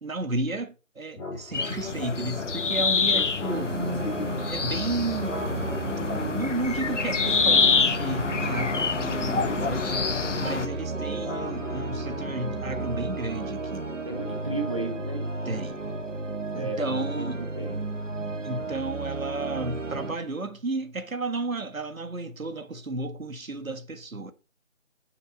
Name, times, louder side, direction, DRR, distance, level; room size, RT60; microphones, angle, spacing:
voice 1, 0.0-3.7 4.5-5.5 6.3-10.1 10.4-13.9 15.4-15.8 16.5-17.4 18.4-24.3, right 2 dB, 90° right, 1.6 m, -33 dB
sound 1, 1.1-17.1, left 2 dB, 10° left, 2.2 m, -39 dB
sound 2, 1.5-10.7, left 5 dB, 65° left, 1.0 m, -26 dB
sound 3, 3.5-20.2, right 3 dB, 65° right, 1.8 m, -34 dB
voice 2, 14.0-15.3 16.5-17.8, right 3 dB, 25° right, 0.9 m, -34 dB
9.7 x 6.8 x 4.0 m
figure-of-eight pair, 165°, 40 cm